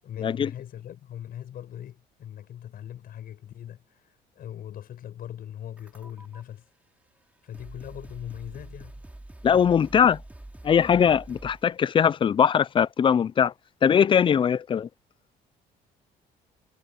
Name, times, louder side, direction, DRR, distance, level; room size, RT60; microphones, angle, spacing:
voice 1, 0.0-6.6 7.4-9.0, left 10 dB, 60° left, 7.9 m, -40 dB
sound 1, 5.8-6.4 7.2-7.3 7.5-11.7, right 1 dB, 10° right, 3.3 m, -45 dB
voice 2, 9.4-10.2 10.6-13.5 13.8-14.9, left 7 dB, 30° left, 0.4 m, -21 dB
cardioid pair, 110°, 17 cm